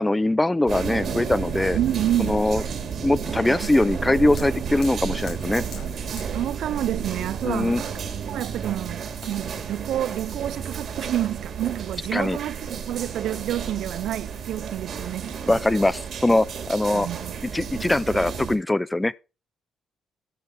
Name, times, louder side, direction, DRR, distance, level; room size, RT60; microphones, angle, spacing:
voice 1, 0.0-1.8 2.2-2.6 3.0-5.6 7.4-7.8 12.1-12.4 15.5-17.1 17.5-19.1, left 1 dB, 10° left, 0.6 m, -22 dB
sound 1, 0.7-18.6, right 7 dB, 60° right, 2.5 m, -32 dB
voice 2, 1.8-2.6 3.5-3.6 6.1-7.9 8.3-15.6 16.9-17.3, right 12 dB, 80° right, 0.5 m, -29 dB
Fire, 3.8-9.3, left 6 dB, 80° left, 5.1 m, -49 dB
13.0 x 6.5 x 5.1 m
cardioid pair, 90°, 0 cm